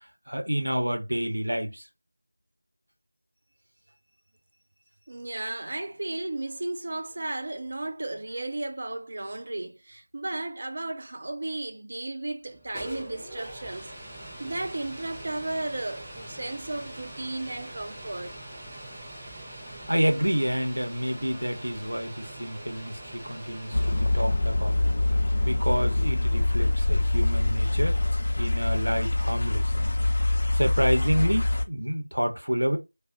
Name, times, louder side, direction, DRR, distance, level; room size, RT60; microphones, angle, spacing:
voice 1, 0.3-1.9 19.9-24.8 25.4-28.0 28.4-30.1 30.5-32.8, equal, 75° right, 0.9 m, -28 dB
voice 2, 5.1-13.9 14.4-18.3, right 2 dB, 40° right, 0.4 m, -34 dB
sound 1, 12.4-29.2, right 1 dB, 10° right, 0.7 m, -44 dB
sound 2, 23.7-31.6, left 2 dB, 45° left, 0.5 m, -24 dB
2.6 x 2.3 x 3.7 m
figure-of-eight pair, 170°, 0 cm